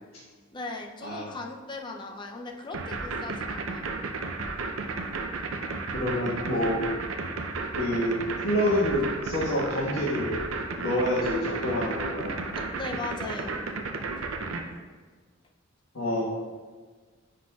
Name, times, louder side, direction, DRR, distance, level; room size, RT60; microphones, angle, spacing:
voice 1, 0.5-3.9 12.5-13.6, left 3 dB, 20° left, 2 dB, 0.4 m, -38 dB
sound 1, 2.7-14.6, right 4 dB, 70° right, 0.6 m, -33 dB
voice 2, 5.9-6.8 7.8-8.1 8.4-10.4 10.8-12.4 15.9-16.4, left 1 dB, 80° left, -8 dB, 1.4 m, -27 dB
9.9 x 4.0 x 2.3 m, 1.5 s
head